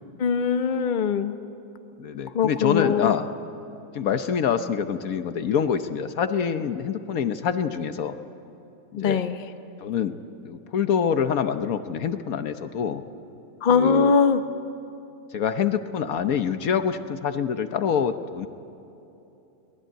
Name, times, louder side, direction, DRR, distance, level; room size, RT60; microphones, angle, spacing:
voice 1, 0.2-1.4 2.3-3.1 9.0-9.4 13.6-14.4, left 6 dB, 35° left, 9 dB, 0.9 m, -21 dB
voice 2, 2.0-3.3 3.9-8.1 8.9-9.2 9.8-10.2 10.4-13.0 13.7-14.1 15.3-18.5, left 7 dB, 70° left, 9 dB, 1.3 m, -26 dB
23.5 x 19.0 x 9.1 m, 2.9 s
omnidirectional pair, 1.6 m